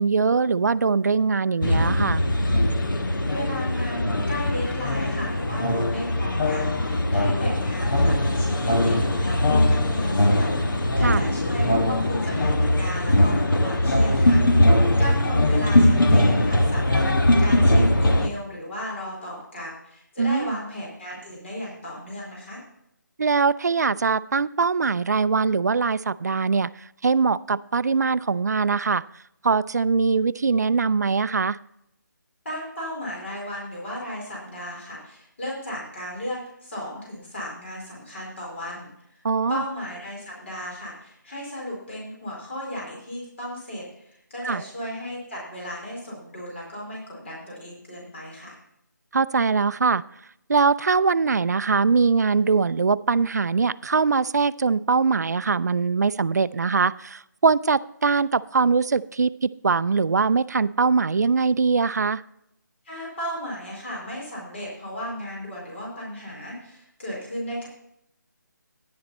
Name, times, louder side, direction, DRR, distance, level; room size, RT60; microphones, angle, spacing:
voice 1, 0.0-2.2 11.0-11.2 20.2-20.6 23.2-26.7 27.0-29.0 29.4-31.6 39.2-39.6 44.4-44.6 49.1-50.0 50.5-62.2, right 4 dB, 55° right, 16 dB, 0.4 m, -22 dB
sound 1, 1.6-18.3, left 1 dB, 85° left, 1.3 m, -21 dB
voice 2, 3.3-14.4 15.0-22.6 32.4-39.2 39.5-48.6 62.8-67.7, equal, 35° left, -4 dB, 4.5 m, -35 dB
10.5 x 8.8 x 4.1 m, 0.77 s
hypercardioid pair, 175°, 11 cm